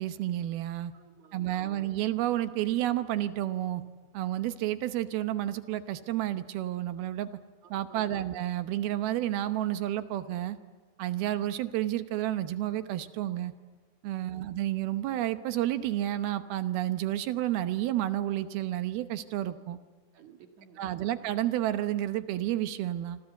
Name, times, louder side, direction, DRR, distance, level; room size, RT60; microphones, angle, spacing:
voice 1, 0.0-0.9 1.3-3.8 4.1-7.3 7.7-10.6 11.0-13.5 14.0-19.8 20.8-23.2, right 13 dB, 75° right, 11 dB, 2.7 m, -30 dB
voice 2, 0.9-1.9 7.6-8.3 14.4-14.5 20.1-21.1, right 7 dB, 55° right, 5 dB, 2.6 m, -55 dB
27.5 x 25.0 x 8.1 m, 1.4 s
omnidirectional pair, 4.7 m